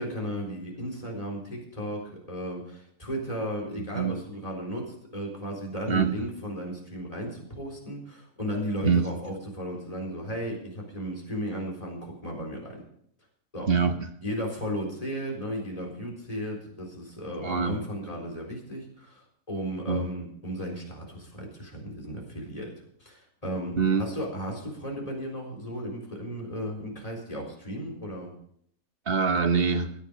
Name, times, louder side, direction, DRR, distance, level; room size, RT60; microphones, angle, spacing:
voice 1, 0.0-12.8 13.5-13.7 14.2-22.7 23.0-28.3, equal, 25° left, -1 dB, 4.2 m, -35 dB
voice 2, 3.8-4.2 5.9-6.3 8.8-9.1 13.7-14.1 17.4-17.8 19.9-20.1 23.8-24.0 29.1-29.9, right 5 dB, 45° right, 7 dB, 1.2 m, -25 dB
16.0 x 10.5 x 5.2 m, 0.67 s
omnidirectional pair, 1.5 m